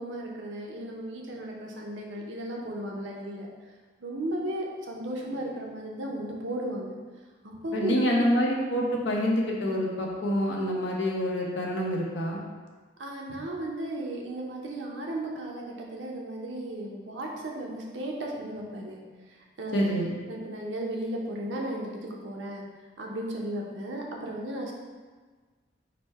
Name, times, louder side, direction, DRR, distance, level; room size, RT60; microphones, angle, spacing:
voice 1, 0.0-3.5 4.0-6.9 7.4-8.3 13.0-19.0 19.3-19.8 20.3-22.6 23.0-24.7, right 1 dB, 85° right, -1 dB, 0.7 m, -35 dB
voice 2, 7.7-12.4 19.7-20.1, equal, 85° left, -2 dB, 0.8 m, -26 dB
5.0 x 2.1 x 4.5 m, 1.4 s
head